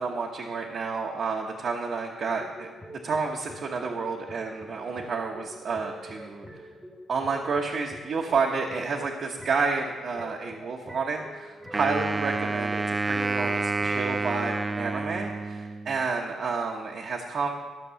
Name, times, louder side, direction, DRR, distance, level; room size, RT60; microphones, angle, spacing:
voice 1, 0.0-2.7 3.0-6.4 7.1-17.5, right 4 dB, 45° right, 0 dB, 1.0 m, -30 dB
sound 1, 2.4-14.1, equal, ahead, 1.2 m, -46 dB
Wind instrument woodwind instrument, 11.7-16.0, right 3 dB, 15° right, 0.5 m, -29 dB
13.5 x 6.8 x 6.8 m, 1.4 s
cardioid pair, 150°, 0 cm